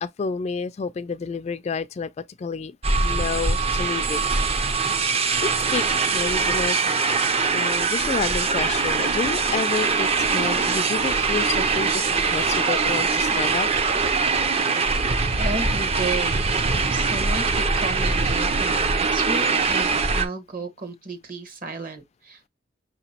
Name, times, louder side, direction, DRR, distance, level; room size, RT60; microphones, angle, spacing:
voice 1, 0.0-2.1 2.4-4.2 5.7-5.8 6.1-6.8 7.5-13.7, left 5 dB, 35° left, 0.3 m, -29 dB
sound 1, 2.8-20.3, right 4 dB, 30° right, 0.5 m, -22 dB
voice 2, 15.4-16.5 16.9-22.5, right 3 dB, 50° right, 1.1 m, -33 dB
5.7 x 2.9 x 2.8 m
head